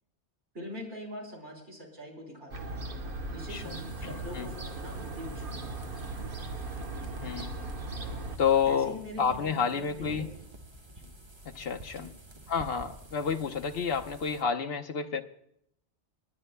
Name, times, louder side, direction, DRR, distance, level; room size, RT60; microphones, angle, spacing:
voice 1, 0.5-2.9 3.3-6.0 8.7-10.3 11.0-11.1 12.0-12.1, left 1 dB, 80° right, -3 dB, 4.1 m, -43 dB
Fowl / Gull seagull, 2.5-8.4, right 2 dB, 50° right, 1.4 m, -38 dB
sound 1, 3.5-14.4, right 1 dB, 25° right, 1.0 m, -49 dB
voice 2, 4.0-4.5 7.2-7.5 8.4-10.2 11.5-12.1 12.5-15.2, left 6 dB, 60° left, 5 dB, 1.1 m, -29 dB
29.5 x 11.0 x 2.2 m, 0.73 s
omnidirectional pair, 1.2 m